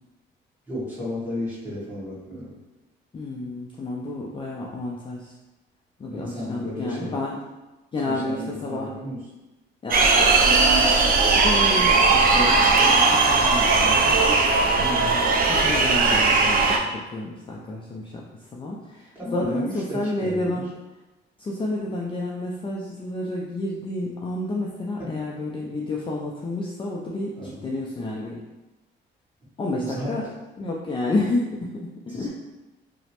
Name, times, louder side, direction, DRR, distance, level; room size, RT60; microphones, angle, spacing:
voice 1, 0.7-2.5 6.1-7.2 8.0-9.2 19.1-20.6 25.0-25.4 27.4-27.7 29.8-30.2 32.1-32.3, left 1 dB, 10° right, -10 dB, 1.5 m, -33 dB
voice 2, 3.1-5.3 6.0-7.4 7.9-8.9 9.8-14.2 14.7-20.7 21.4-27.3 27.6-28.4 29.6-30.3 30.6-32.3, left 2 dB, 25° left, -3 dB, 0.4 m, -30 dB
sound 1, 9.9-16.8, right 3 dB, 45° right, 0.4 m, -18 dB
2.9 x 2.0 x 2.9 m, 1.1 s
cardioid pair, 90°, 20 cm